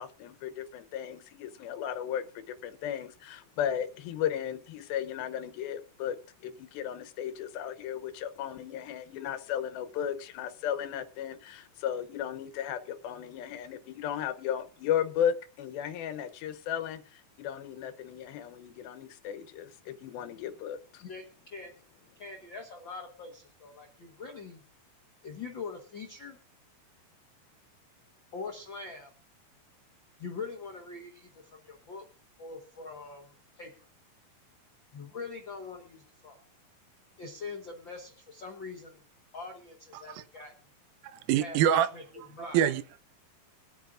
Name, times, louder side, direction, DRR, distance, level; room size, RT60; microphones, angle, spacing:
voice 1, 0.0-21.0, left 9 dB, 85° left, 2.7 m, -35 dB
voice 2, 21.0-21.7 22.1-24.6 25.2-26.4 28.3-29.1 30.2-32.0 32.4-33.7 34.9-36.4 37.2-39.0 39.3-40.5 41.4-42.0 42.3-42.6, left 4 dB, 65° left, 1.1 m, -43 dB
voice 3, 41.1-41.9 42.2-42.3 42.5-43.0, right 10 dB, 80° right, 2.4 m, -26 dB
23.0 x 9.1 x 2.5 m
omnidirectional pair, 4.2 m